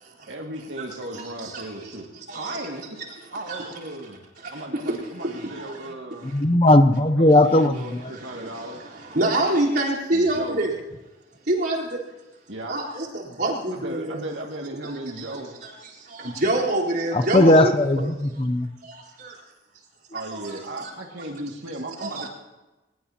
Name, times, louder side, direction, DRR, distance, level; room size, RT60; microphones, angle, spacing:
voice 1, 0.3-2.1 2.3-3.0 3.3-4.2 4.5-6.3 7.1-8.8 10.1-10.7 12.5-12.8 13.7-15.5 20.1-22.3, right 1 dB, 80° right, 1 dB, 2.3 m, -36 dB
voice 2, 1.1-1.6 2.3-2.6 3.5-3.7 4.4-5.9 8.1-10.7 11.5-12.0 12.7-14.2 14.8-18.1 18.8-19.4 20.3-20.5 20.8-20.9 22.0-22.3, right 1 dB, 60° right, -4 dB, 4.1 m, -27 dB
voice 3, 6.3-8.0 17.1-18.7, left 1 dB, 30° left, 9 dB, 0.7 m, -17 dB
23.5 x 21.0 x 2.9 m, 1.1 s
head